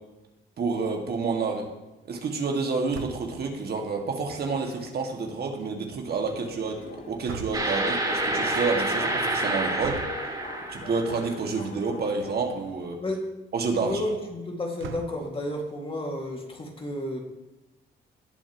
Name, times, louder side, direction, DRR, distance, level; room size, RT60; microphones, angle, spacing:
voice 1, 0.6-1.7 2.1-6.8 7.1-10.0 10.7-13.0 13.5-14.0, right 4 dB, 55° right, 2 dB, 2.0 m, -29 dB
sound 1, 2.9-3.5 7.3-7.9 9.8-10.3 11.5-11.7 12.1-12.2 12.5-12.6 14.8-15.4, right 7 dB, 80° right, 1.0 m, -39 dB
Subway metro underground, 6.1-12.9, left 4 dB, 45° left, 1.4 m, -43 dB
sound 2, 7.5-11.4, right 2 dB, 20° right, 3.7 m, -28 dB
voice 2, 13.0-13.3 13.8-17.2, left 1 dB, 25° left, 1 dB, 2.2 m, -31 dB
19.0 x 7.1 x 3.1 m, 1.0 s
cardioid pair, 90°, 20 cm